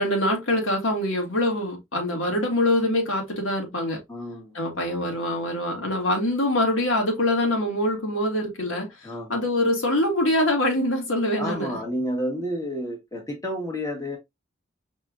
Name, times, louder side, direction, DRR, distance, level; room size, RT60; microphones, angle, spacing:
voice 1, 0.0-4.0 4.5-11.8, left 1 dB, 80° left, 1.8 m, -24 dB
voice 2, 4.1-4.5 9.0-9.5 11.4-14.2, equal, 15° left, 1.2 m, -30 dB
5.3 x 3.3 x 2.4 m
head